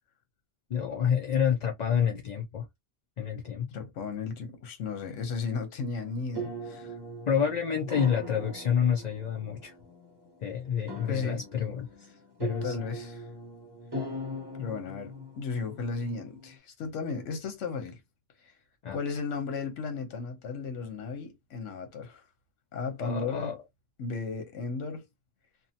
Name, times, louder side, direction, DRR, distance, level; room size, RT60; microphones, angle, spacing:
voice 1, 0.7-2.7 3.2-3.7 7.3-9.7 10.4-11.9 12.4-12.8 18.8-19.0 23.0-23.6, left 8 dB, 55° left, 0.4 m, -28 dB
voice 2, 3.7-6.9 11.1-11.4 12.6-13.2 14.6-18.0 18.4-18.5 18.9-22.2 22.7-23.6 24.0-25.0, left 4 dB, 80° left, 1.1 m, -35 dB
sound 1, 6.0-16.5, right 1 dB, 25° right, 0.6 m, -41 dB
2.7 x 2.3 x 2.6 m
omnidirectional pair, 1.3 m